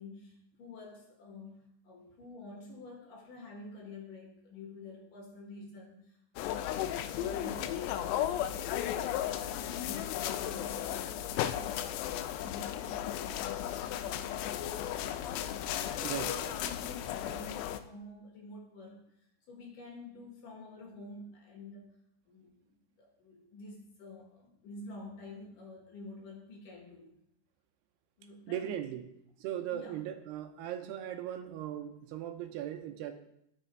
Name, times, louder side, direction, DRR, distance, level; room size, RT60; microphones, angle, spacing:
voice 1, 0.0-8.1 8.4-15.2 15.7-22.0 22.3-27.2 28.2-28.8 29.7-30.0, left 2 dB, 60° left, -1 dB, 2.9 m, -49 dB
sound 1, 6.4-17.8, left 11 dB, 90° left, 2.8 m, -35 dB
voice 2, 28.5-29.0 29.4-33.1, right 11 dB, 80° right, 6 dB, 2.7 m, -38 dB
12.0 x 6.7 x 4.5 m, 0.77 s
omnidirectional pair, 4.8 m